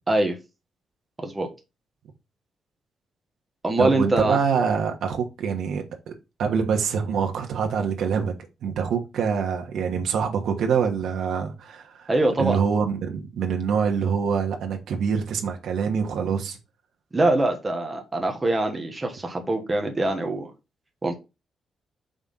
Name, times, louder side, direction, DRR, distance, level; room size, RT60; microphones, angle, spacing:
voice 1, 0.1-0.4 1.2-1.5 3.6-4.4 12.1-12.6 17.1-20.5 21.0-21.2, right 2 dB, 20° right, 1.4 m, -23 dB
voice 2, 3.8-6.1 6.4-8.3 8.6-12.1 12.4-16.6, right 6 dB, 80° right, 1.3 m, -25 dB
5.3 x 3.7 x 5.6 m
cardioid pair, 135°, 0 cm